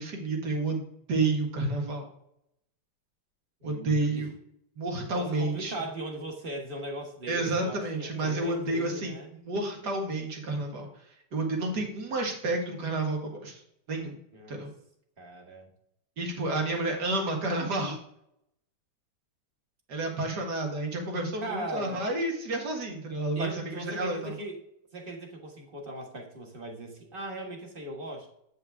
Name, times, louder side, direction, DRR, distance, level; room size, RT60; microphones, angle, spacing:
voice 1, 0.0-2.1 3.6-4.3 4.8-5.7 7.3-10.9 11.3-13.6 13.9-14.2 14.5-14.7 16.2-18.0 19.9-24.3, right 2 dB, 70° right, 1 dB, 2.3 m, -30 dB
voice 2, 3.6-4.3 5.1-9.3 14.3-14.6 15.2-15.7 21.4-22.1 23.3-24.6 24.9-28.3, right 1 dB, 35° right, 2 dB, 1.5 m, -39 dB
8.6 x 5.7 x 3.5 m, 0.75 s
omnidirectional pair, 1.8 m